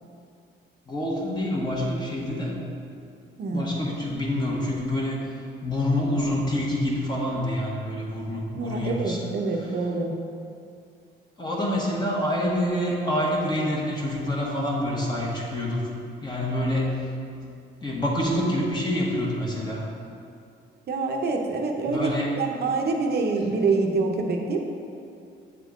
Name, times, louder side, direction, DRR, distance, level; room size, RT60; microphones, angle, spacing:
voice 1, 0.9-2.6 3.5-5.2 5.6-9.7 11.4-15.9 16.2-17.4 17.8-19.8 21.9-22.3, left 1 dB, 20° left, -4 dB, 1.2 m, -27 dB
voice 2, 8.5-10.1 20.9-24.6, right 3 dB, 55° right, 2 dB, 0.8 m, -26 dB
8.1 x 3.7 x 3.6 m, 2.4 s
cardioid pair, 90°, 20 cm